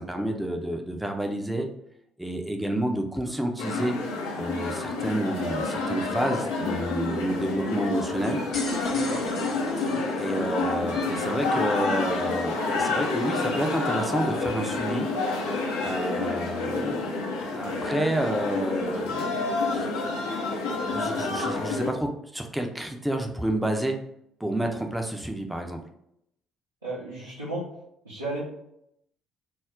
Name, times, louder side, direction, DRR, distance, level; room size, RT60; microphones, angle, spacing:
voice 1, 0.0-1.7 2.2-4.0 4.4-8.4 10.2-15.1 15.8-19.9 20.4-20.5 20.9-24.0 24.4-25.8, right 1 dB, 5° right, 3 dB, 0.5 m, -29 dB
sound 1, 3.6-21.9, left 3 dB, 70° left, 0.5 m, -28 dB
sound 2, 8.2-10.8, left 2 dB, 40° left, 0.8 m, -39 dB
voice 2, 8.9-9.2 26.8-27.6 28.0-28.4, right 2 dB, 85° right, -10 dB, 0.6 m, -34 dB
2.3 x 2.0 x 3.7 m, 0.76 s
figure-of-eight pair, 50°, 0 cm